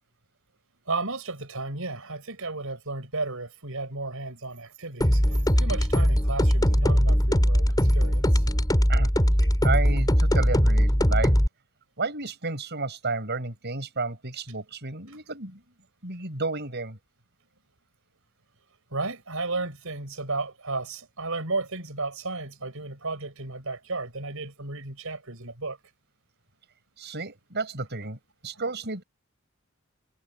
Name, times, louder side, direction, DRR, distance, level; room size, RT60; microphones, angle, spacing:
voice 1, 0.9-7.7 7.9-8.4 15.1-15.2 18.9-25.8 28.5-28.6, right 3 dB, 70° right, 6.9 m, -33 dB
sound 1, 5.0-11.5, equal, 20° left, 6.5 m, -21 dB
voice 2, 9.6-11.3 12.0-15.6 16.0-17.0 27.0-28.2 28.4-29.0, right 3 dB, 55° right, 7.2 m, -32 dB
head